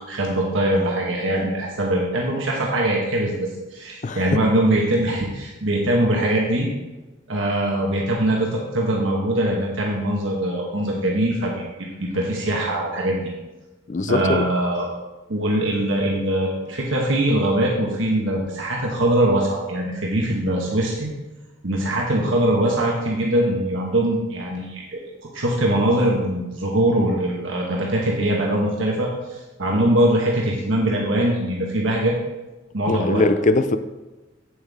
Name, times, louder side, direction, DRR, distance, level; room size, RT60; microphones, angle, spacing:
voice 1, 0.0-6.7 7.3-11.5 12.0-13.2 14.1-14.9 15.3-21.1 21.6-25.0 25.3-32.1 32.7-33.3, right 1 dB, 75° right, -2 dB, 1.3 m, -22 dB
voice 2, 13.9-14.5 32.9-33.8, left 2 dB, 40° left, 11 dB, 0.5 m, -20 dB
8.4 x 7.9 x 3.5 m, 1.1 s
head